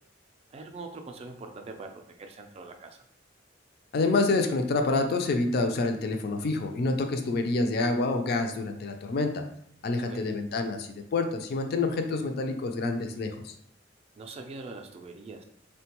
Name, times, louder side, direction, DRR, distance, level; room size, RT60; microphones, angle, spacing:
voice 1, 0.5-3.0 10.1-10.4 14.2-15.4, right 3 dB, 30° right, 5 dB, 0.3 m, -43 dB
voice 2, 3.9-9.3 9.8-13.5, left 3 dB, 55° left, 5 dB, 0.4 m, -27 dB
3.6 x 2.2 x 2.9 m, 0.68 s
head